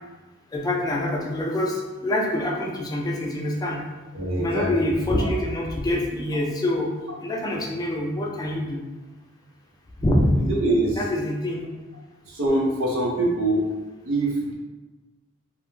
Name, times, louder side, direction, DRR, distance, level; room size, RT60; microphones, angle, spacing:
voice 1, 0.5-3.8 4.4-6.9 7.2-8.8 10.0-10.3 11.0-11.6, left 1 dB, 20° left, -1 dB, 0.3 m, -25 dB
voice 2, 4.1-5.3 10.4-11.0 12.3-13.7 14.1-14.5, right 1 dB, 85° right, -2 dB, 0.6 m, -24 dB
2.3 x 2.2 x 3.0 m, 1.2 s
head